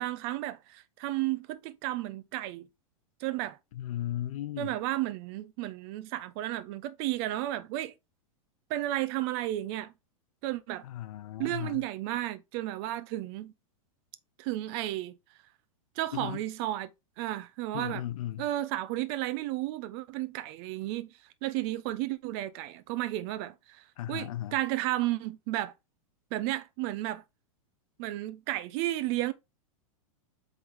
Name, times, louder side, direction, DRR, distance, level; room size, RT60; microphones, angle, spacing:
voice 1, 0.0-2.7 3.2-3.6 4.6-7.9 8.7-9.9 10.4-10.8 11.4-13.5 14.4-15.1 16.0-16.9 17.2-18.0 18.4-21.1 21.4-25.7 26.3-27.2 28.0-29.3, right 15 dB, 50° right, 0.9 m, -33 dB
voice 2, 3.7-4.8 10.8-11.8 16.1-16.4 17.7-18.5 24.0-24.6, left 12 dB, 70° left, 0.7 m, -36 dB
7.8 x 3.8 x 3.6 m
hypercardioid pair, 125°, 18 cm